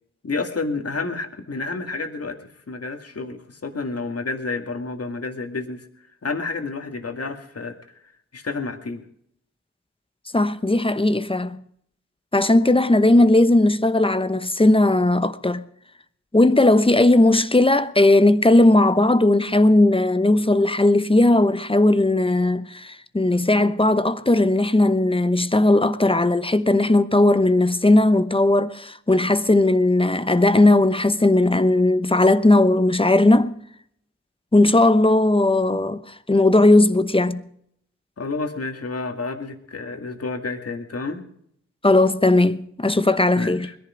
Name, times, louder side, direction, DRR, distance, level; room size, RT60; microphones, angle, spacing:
voice 1, 0.2-2.4 2.7-5.9 6.2-7.8 8.3-9.0 38.2-41.2 43.3-43.8, left 3 dB, 50° left, 2.2 m, -30 dB
voice 2, 10.3-11.6 12.3-15.6 16.3-33.5 34.5-37.4 41.8-43.7, left 2 dB, 20° left, 0.9 m, -17 dB
21.0 x 11.0 x 5.1 m
cardioid pair, 60°, 30 cm